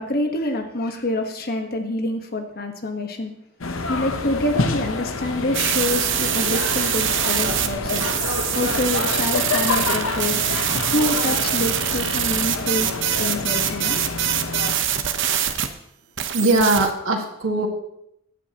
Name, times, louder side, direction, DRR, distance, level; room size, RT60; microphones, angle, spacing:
voice 1, 0.0-3.3 3.9-10.5 10.9-12.9 13.2-14.0, left 1 dB, 50° left, 5 dB, 1.3 m, -26 dB
sound 1, 3.6-14.8, left 3 dB, 85° left, 1.0 m, -28 dB
sound 2, 5.5-15.7 16.2-16.9, right 10 dB, 65° right, 0.9 m, -24 dB
voice 2, 16.3-17.7, right 2 dB, 90° right, 1 dB, 1.8 m, -20 dB
16.0 x 9.1 x 3.0 m, 0.76 s
head